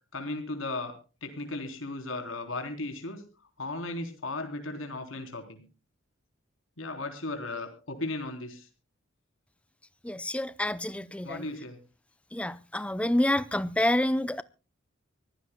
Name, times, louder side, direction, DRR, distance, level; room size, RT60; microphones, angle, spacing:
voice 1, 0.1-0.9 1.2-3.2 3.6-5.6 6.8-8.7 11.2-11.8, left 2 dB, 80° left, 3.7 m, -36 dB
voice 2, 10.0-11.4 12.3-14.4, left 1 dB, 5° left, 0.6 m, -28 dB
24.5 x 15.5 x 2.2 m
head